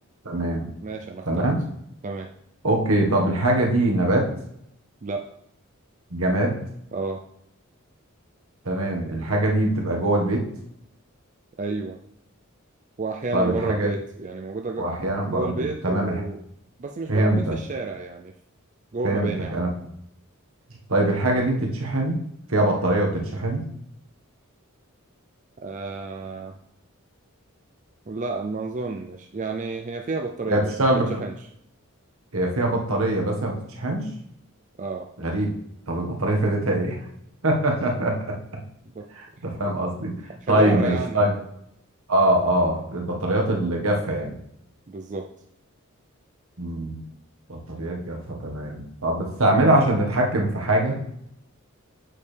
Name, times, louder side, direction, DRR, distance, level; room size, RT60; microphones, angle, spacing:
voice 1, 0.2-0.7 1.3-1.6 2.6-4.3 6.1-6.6 8.6-10.4 13.3-13.9 14.8-16.1 17.1-17.6 19.0-19.7 20.9-22.2 22.5-23.6 30.5-31.2 32.3-34.1 35.2-35.5 35.9-37.0 37.4-38.2 39.1-40.1 40.5-41.3 42.1-44.4 46.6-47.0 47.5-50.9, right 1 dB, 70° right, 0 dB, 1.6 m, -23 dB
voice 2, 0.8-1.5 2.0-2.3 5.0-5.2 6.9-7.2 11.6-12.0 13.0-14.9 15.3-16.4 16.8-18.3 18.9-19.7 25.6-26.6 28.1-31.4 34.8-35.1 38.9-39.0 39.4-39.8 40.4-41.4 44.9-45.3, right 3 dB, 35° right, 3 dB, 0.5 m, -31 dB
8.4 x 6.4 x 3.4 m, 0.75 s
head